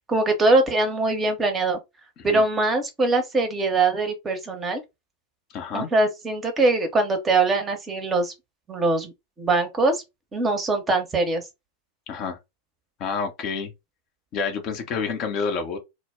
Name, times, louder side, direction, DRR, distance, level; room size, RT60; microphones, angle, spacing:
voice 1, 0.1-1.8 2.2-4.8 5.7-8.3 8.7-9.1 9.4-10.0 10.3-11.4, right 2 dB, 20° right, 0.7 m, -22 dB
voice 2, 5.5-5.9 12.1-12.4 13.0-13.7 14.3-15.8, left 5 dB, 35° left, 0.6 m, -28 dB
2.1 x 2.0 x 3.4 m
figure-of-eight pair, 90°, 0 cm